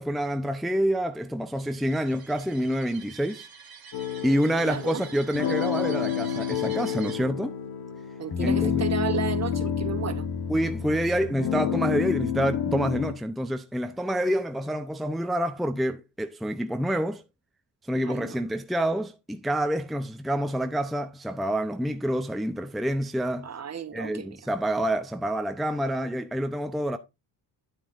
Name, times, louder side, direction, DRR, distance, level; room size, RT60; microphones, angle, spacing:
voice 1, 0.0-3.5 4.2-7.5 8.4-8.8 10.5-17.2 17.9-23.5 23.9-27.0, equal, ahead, 0.6 m, -27 dB
sound 1, 1.6-7.1, right 7 dB, 55° right, 1.6 m, -47 dB
sound 2, 3.9-13.1, left 8 dB, 60° left, 1.3 m, -29 dB
voice 2, 4.6-5.0 8.2-10.3 18.0-18.4 23.4-24.3, right 7 dB, 40° right, 1.1 m, -33 dB
9.4 x 8.6 x 2.5 m
cardioid pair, 70°, 42 cm